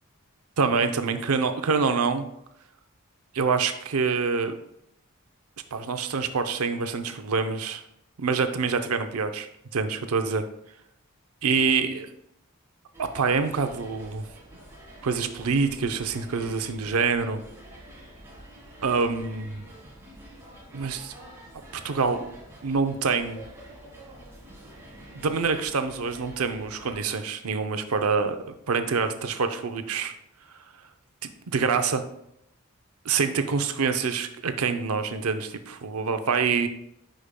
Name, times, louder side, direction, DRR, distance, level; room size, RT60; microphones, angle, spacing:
voice 1, 0.6-2.3 3.3-4.6 5.7-7.8 8.2-10.4 11.4-12.1 13.0-14.2 15.0-17.4 18.8-19.6 20.7-21.1 21.8-22.2 22.6-23.4 25.2-30.1 31.2-32.0 33.0-36.7, right 5 dB, 80° right, 8 dB, 0.6 m, -26 dB
sound 1, 12.9-27.0, right 1 dB, 10° right, 1.5 m, -47 dB
9.8 x 5.1 x 2.2 m, 0.78 s
head